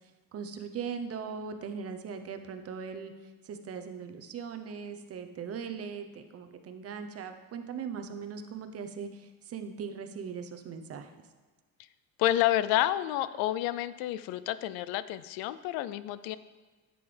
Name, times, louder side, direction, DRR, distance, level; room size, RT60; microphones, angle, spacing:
voice 1, 0.3-3.1 3.4-11.1, right 6 dB, 40° right, 7 dB, 0.9 m, -39 dB
voice 2, 12.2-16.4, left 13 dB, 90° left, 15 dB, 0.5 m, -29 dB
10.0 x 7.8 x 3.4 m, 1.4 s
cardioid pair, 115°, 35 cm